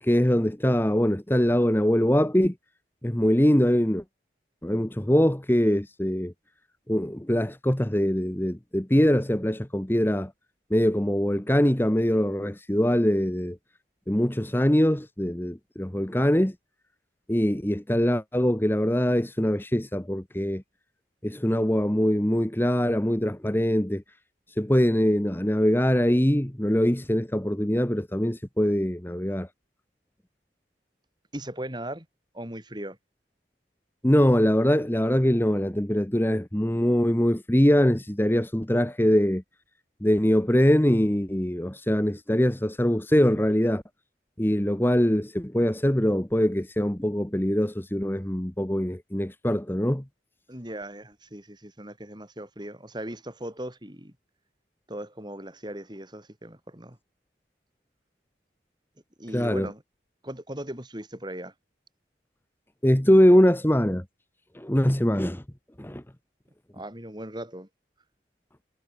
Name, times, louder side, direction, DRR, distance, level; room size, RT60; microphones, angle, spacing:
voice 1, 0.0-2.5 3.0-4.0 4.6-6.3 6.9-10.3 10.7-13.6 14.1-16.5 17.3-20.6 21.2-24.0 24.6-29.5 34.0-39.4 40.0-43.8 44.4-50.0 59.3-59.7 62.8-64.0 64.5-65.4 65.8-66.0, equal, 10° left, 1.1 m, -23 dB
voice 2, 31.3-32.1 32.3-33.0 50.5-54.1 54.9-57.0 59.2-59.8 60.2-61.5 66.7-67.7, right 1 dB, 25° right, 4.8 m, -38 dB
head